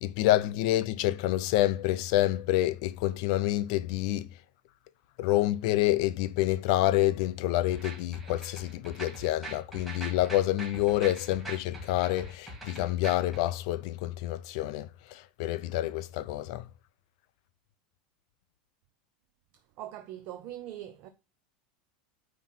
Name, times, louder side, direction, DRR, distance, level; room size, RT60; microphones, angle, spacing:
voice 1, 0.0-4.3 5.2-16.6, left 15 dB, 45° left, 0.5 m, -28 dB
sound 1, 7.7-13.4, right 2 dB, 5° right, 2.1 m, -42 dB
voice 2, 19.5-21.1, right 12 dB, 35° right, 0.5 m, -42 dB
9.2 x 3.1 x 5.9 m
supercardioid pair, 175°, 4 cm